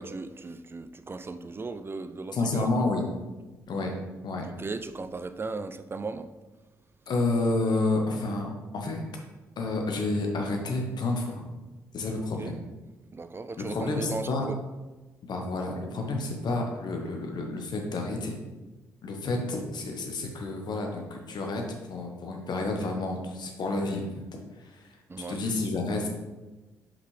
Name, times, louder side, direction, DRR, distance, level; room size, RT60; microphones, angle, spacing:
voice 1, 0.0-2.7 4.6-6.3 12.4-12.5 13.1-14.6 25.1-25.4, right 3 dB, 25° right, 11 dB, 0.5 m, -37 dB
voice 2, 2.3-3.0 3.7-3.9 4.2-4.4 7.1-9.0 9.6-11.4 11.9-12.6 13.7-14.5 15.2-18.4 19.0-21.6 21.9-24.1 24.6-24.9 25.3-26.1, left 2 dB, 55° left, 2 dB, 1.1 m, -30 dB
5.9 x 5.4 x 3.3 m, 1.2 s
hypercardioid pair, 40°, 9 cm